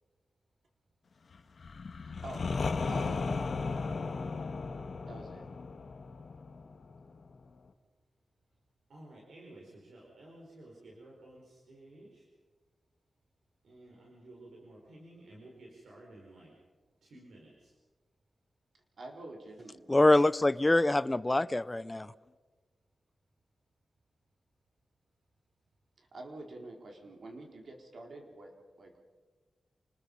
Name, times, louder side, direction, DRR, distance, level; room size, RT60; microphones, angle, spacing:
sound 1, 1.6-7.3, left 4 dB, 60° left, 1.6 m, -35 dB
voice 1, 2.0-2.4 2.9-3.2 5.1-5.4 19.0-20.2 26.0-28.5 28.8-29.0, right 2 dB, 65° right, 2 dB, 4.1 m, -47 dB
voice 2, 8.9-12.2 13.6-16.5 17.0-17.7, right 1 dB, 85° right, -3 dB, 5.1 m, -53 dB
voice 3, 19.9-22.1, left 2 dB, 20° left, 16 dB, 0.6 m, -25 dB
28.0 x 20.5 x 5.5 m, 1.3 s
wide cardioid pair, 100°, 0 cm